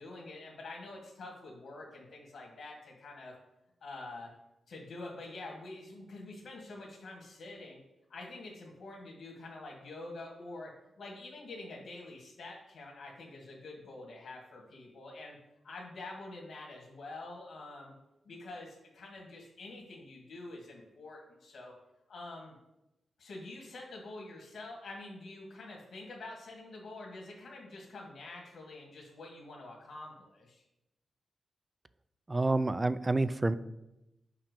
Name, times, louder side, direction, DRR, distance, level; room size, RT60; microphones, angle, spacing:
voice 1, 0.0-3.4 3.8-4.3 4.7-7.8 8.1-15.4 15.6-18.0 18.2-21.7 22.1-22.6 23.2-30.6, left 2 dB, 75° left, -1 dB, 1.6 m, -46 dB
voice 2, 32.3-33.6, right 2 dB, 20° right, 15 dB, 0.3 m, -28 dB
5.8 x 5.6 x 6.6 m, 0.93 s
wide cardioid pair, 145°, 0 cm